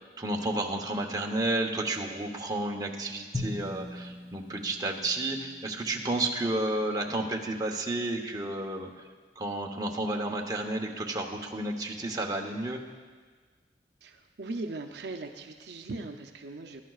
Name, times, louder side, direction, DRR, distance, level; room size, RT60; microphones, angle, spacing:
voice 1, 0.0-8.9 9.4-12.8, right 2 dB, 20° right, 1 dB, 1.0 m, -31 dB
Drum, 3.3-6.3, left 2 dB, 15° left, 0.8 m, -40 dB
voice 2, 14.0-16.8, right 2 dB, 70° right, 4 dB, 0.6 m, -39 dB
20.0 x 11.0 x 2.4 m, 1.5 s
head